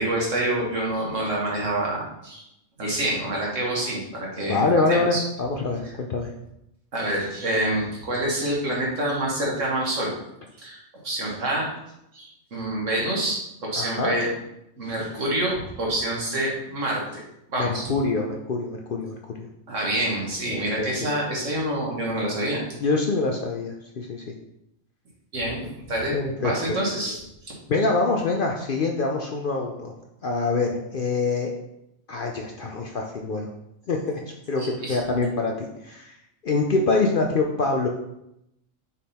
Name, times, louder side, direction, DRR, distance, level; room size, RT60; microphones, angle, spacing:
voice 1, 0.0-2.5 2.8-5.2 5.8-5.9 6.9-10.1 10.6-11.7 12.1-14.3 14.8-17.2 17.5-17.9 19.7-22.6 25.3-25.6 25.9-27.5 34.6-35.0, right 1 dB, 70° right, -3 dB, 1.9 m, -27 dB
voice 2, 4.4-6.3 13.8-14.1 17.6-19.5 20.8-20.9 22.8-24.2 26.1-26.8 27.7-29.9 30.2-31.5 32.1-33.5 33.9-34.0 34.5-34.6 34.9-36.1 36.4-37.9, left 3 dB, 55° left, 2 dB, 0.6 m, -25 dB
6.4 x 3.7 x 4.2 m, 0.83 s
omnidirectional pair, 1.4 m